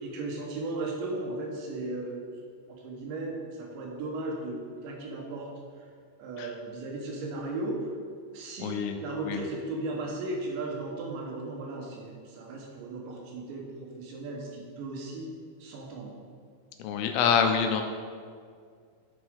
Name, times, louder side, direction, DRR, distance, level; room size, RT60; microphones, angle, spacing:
voice 1, 0.0-2.2 2.7-4.6 4.8-5.5 5.8-5.9 6.2-7.9 8.3-15.3 15.6-16.1, right 2 dB, 80° right, -1 dB, 3.3 m, -36 dB
voice 2, 8.6-9.0 9.3-9.4 16.8-17.8, left 7 dB, 80° left, 6 dB, 2.4 m, -26 dB
13.5 x 5.8 x 3.7 m, 2.1 s
omnidirectional pair, 5.2 m